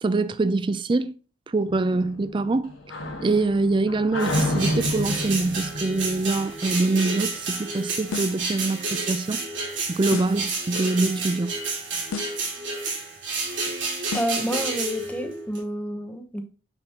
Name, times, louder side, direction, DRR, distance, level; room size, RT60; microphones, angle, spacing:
voice 1, 0.0-1.1 1.5-2.7 3.2-9.4 9.9-11.5, right 3 dB, 25° right, 0.3 m, -24 dB
sound 1, 1.7-7.1, left 1 dB, 75° left, 1.3 m, -30 dB
sound 2, 4.2-15.6, right 3 dB, 65° right, 2.3 m, -30 dB
sound 3, 8.1-8.5 10.1-10.5 12.1-12.5 14.1-14.5, left 5 dB, 90° left, 0.5 m, -34 dB
voice 2, 14.1-16.4, equal, 5° left, 0.7 m, -29 dB
6.5 x 5.9 x 2.9 m
head